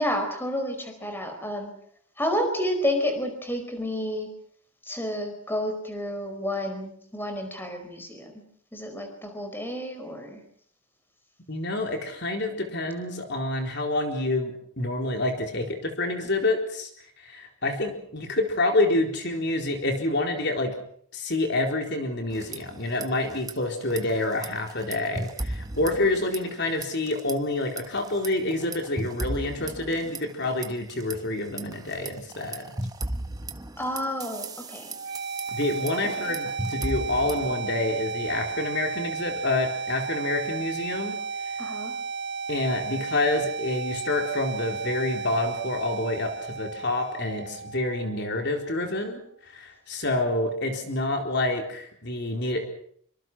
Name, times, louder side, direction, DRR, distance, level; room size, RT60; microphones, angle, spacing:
voice 1, 0.0-1.7 2.2-4.3 4.8-8.4 8.7-10.4 33.8-35.0 35.9-36.4 41.6-41.9, left 1 dB, 10° left, 6 dB, 4.7 m, -30 dB
voice 2, 11.5-16.9 17.2-20.7 21.1-32.7 35.5-41.2 41.4-41.5 42.5-52.7, left 2 dB, 50° left, 4 dB, 4.1 m, -28 dB
sound 1, 22.3-23.1 23.3-23.5 23.9-26.6 26.8-27.3 27.8-31.1 31.6-37.5, right 2 dB, 15° right, 1.4 m, -35 dB
sound 2, 34.9-48.8, right 5 dB, 50° right, 1.2 m, -34 dB
26.5 x 25.0 x 6.2 m, 0.62 s
head